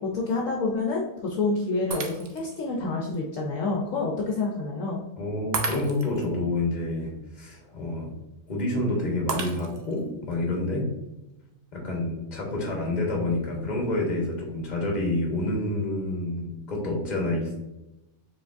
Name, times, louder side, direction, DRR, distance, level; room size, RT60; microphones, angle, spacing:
voice 1, 0.1-5.0, left 3 dB, 70° left, -1 dB, 1.0 m, -28 dB
Shatter, 1.9-2.6 3.2-3.3 5.5-6.3 9.3-10.0, right 5 dB, 60° right, 0.7 m, -33 dB
voice 2, 5.2-8.1 8.5-10.9 11.7-17.6, left 2 dB, 35° left, -1 dB, 1.1 m, -28 dB
4.8 x 3.7 x 2.5 m, 0.97 s
omnidirectional pair, 1.5 m